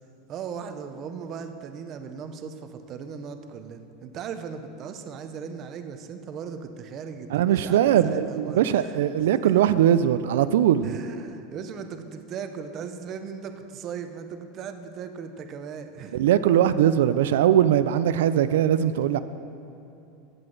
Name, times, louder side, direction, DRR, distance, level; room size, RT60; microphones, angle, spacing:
voice 1, 0.3-9.5 10.8-16.2, right 6 dB, 30° right, 8 dB, 0.6 m, -38 dB
voice 2, 7.3-11.0 16.1-19.2, right 10 dB, 90° right, 13 dB, 0.3 m, -21 dB
15.0 x 7.9 x 3.9 m, 2.9 s
supercardioid pair, 170°, 0 cm